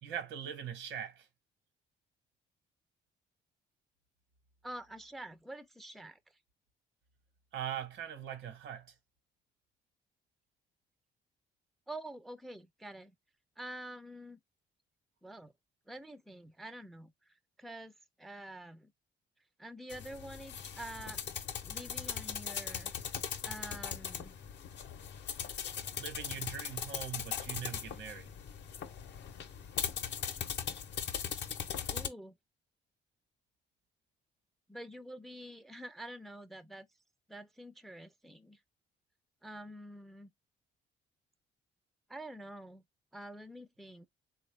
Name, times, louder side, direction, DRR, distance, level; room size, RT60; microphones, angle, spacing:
voice 1, 0.0-1.3 7.5-8.9 25.8-28.3, right 9 dB, 85° right, 1.1 m, -41 dB
voice 2, 4.6-6.2 11.9-13.1 13.6-14.4 15.2-15.5 15.9-18.9 19.6-21.2 21.6-22.9 23.4-24.3 31.9-32.3 34.7-36.9 37.3-38.6 39.4-40.3 42.1-42.8 43.1-44.1, right 1 dB, ahead, 0.3 m, -47 dB
sound 1, 19.9-32.1, left 8 dB, 65° left, 0.6 m, -39 dB
3.6 x 2.3 x 3.2 m
cardioid pair, 90°, 20 cm